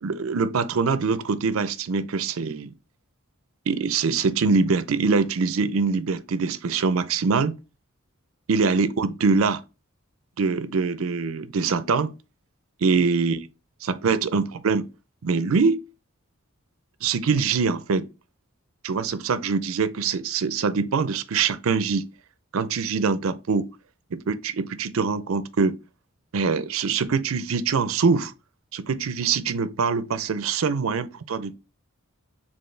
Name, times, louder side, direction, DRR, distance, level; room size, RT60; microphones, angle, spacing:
voice 1, 0.0-2.7 3.7-7.6 8.5-9.6 10.4-12.1 12.8-13.4 13.8-14.9 15.2-15.8 17.0-18.1 18.8-22.1 22.5-23.7 24.1-25.8 26.3-28.3 28.7-31.6, right 5 dB, 80° right, 0.5 m, -23 dB
4.4 x 3.6 x 3.2 m
head